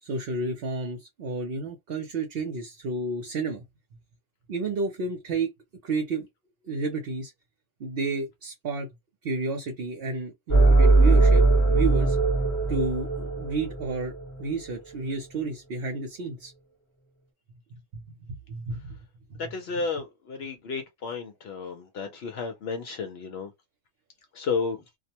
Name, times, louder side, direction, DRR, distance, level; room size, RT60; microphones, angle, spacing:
voice 1, 0.0-3.6 4.5-5.5 5.8-6.3 6.6-7.3 7.8-8.9 9.2-11.4 11.7-12.2 12.7-14.1 14.4-16.5 17.7-19.0 19.3-19.4, right 3 dB, 65° right, 0.8 m, -31 dB
sound 1, 10.5-14.5, right 3 dB, 20° left, 0.8 m, -20 dB
voice 2, 19.5-23.5 24.4-24.8, left 4 dB, 70° left, 0.8 m, -32 dB
2.3 x 2.1 x 2.8 m
omnidirectional pair, 1.1 m